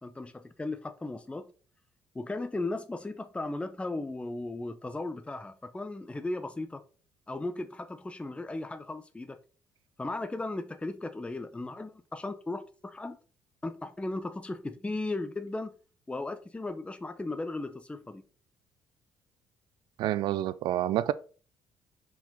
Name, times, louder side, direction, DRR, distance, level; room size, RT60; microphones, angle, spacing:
voice 1, 0.0-1.5 2.1-6.8 7.3-9.4 10.0-13.2 13.6-15.7 16.1-18.2, left 2 dB, 15° left, 0.6 m, -36 dB
voice 2, 20.0-21.1, right 13 dB, 60° right, 0.4 m, -28 dB
5.6 x 4.6 x 4.1 m
hypercardioid pair, 50°, 9 cm